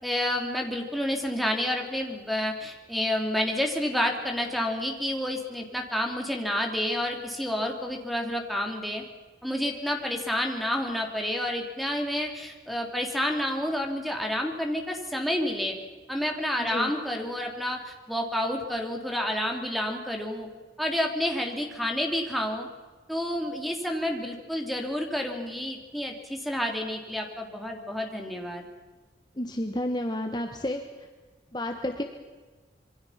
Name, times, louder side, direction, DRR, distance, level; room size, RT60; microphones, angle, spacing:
voice 1, 0.0-9.0 9.4-15.8 16.1-20.5 20.8-22.7 23.1-28.6, left 1 dB, ahead, 1 dB, 3.0 m, -29 dB
voice 2, 16.6-16.9 29.4-30.8 31.5-32.0, left 1 dB, 25° left, 4 dB, 1.3 m, -30 dB
26.5 x 23.5 x 5.8 m, 1.4 s
head